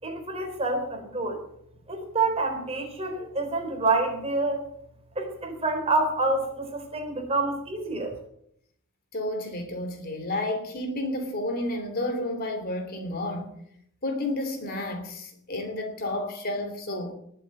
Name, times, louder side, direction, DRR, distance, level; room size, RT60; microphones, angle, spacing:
voice 1, 0.0-1.4 1.9-4.7 5.2-8.2, right 3 dB, 25° right, 3 dB, 3.7 m, -27 dB
voice 2, 9.1-13.5 14.0-17.1, left 1 dB, 45° left, 6 dB, 2.9 m, -31 dB
20.0 x 7.9 x 7.5 m, 0.71 s
head